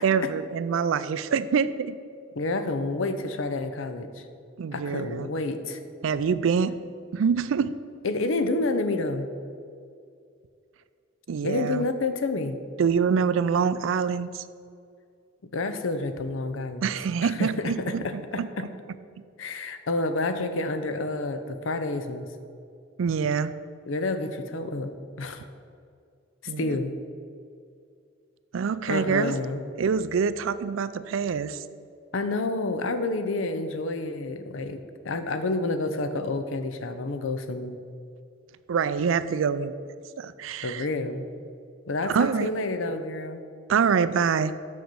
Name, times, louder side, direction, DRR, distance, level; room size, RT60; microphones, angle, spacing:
voice 1, 0.0-2.0 4.6-5.3 6.0-6.8 7.1-7.7 11.3-11.9 12.8-14.4 16.8-18.0 18.4-18.5 23.0-23.5 26.5-26.8 28.5-29.4 29.8-31.6 38.7-39.7 40.2-40.9 42.0-42.5 43.7-44.5, right 6 dB, 90° right, 14 dB, 0.4 m, -25 dB
voice 2, 2.3-4.2 4.7-5.8 8.0-9.3 11.4-12.6 15.5-16.9 17.2-18.7 19.4-22.3 23.9-25.4 26.4-26.9 28.9-29.6 32.1-37.8 40.6-41.3 41.9-43.4, left 2 dB, 85° left, 9 dB, 0.7 m, -29 dB
6.4 x 5.8 x 6.8 m, 2.3 s
head